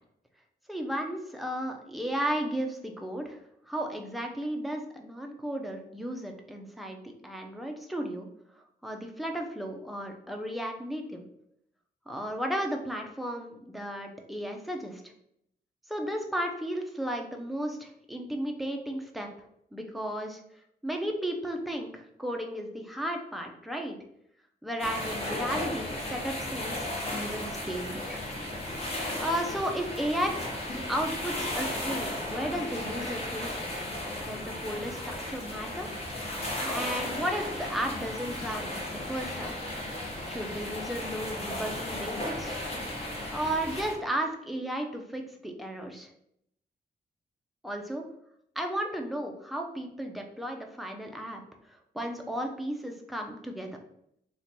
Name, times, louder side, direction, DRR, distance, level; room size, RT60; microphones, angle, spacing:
voice 1, 0.7-3.4 3.7-8.3 8.8-11.2 12.1-15.0 15.9-19.3 19.7-20.4 20.8-24.0 24.6-28.2 29.2-30.3 30.9-33.7 34.2-35.9 36.6-39.6 40.2-42.6 43.3-46.1 47.6-48.0 48.6-51.4 51.9-53.7, right 1 dB, ahead, 2 dB, 0.3 m, -34 dB
sound 1, 24.8-43.9, left 1 dB, 35° left, 0.8 m, -35 dB
2.9 x 2.2 x 3.9 m, 0.74 s
wide cardioid pair, 160°, 17 cm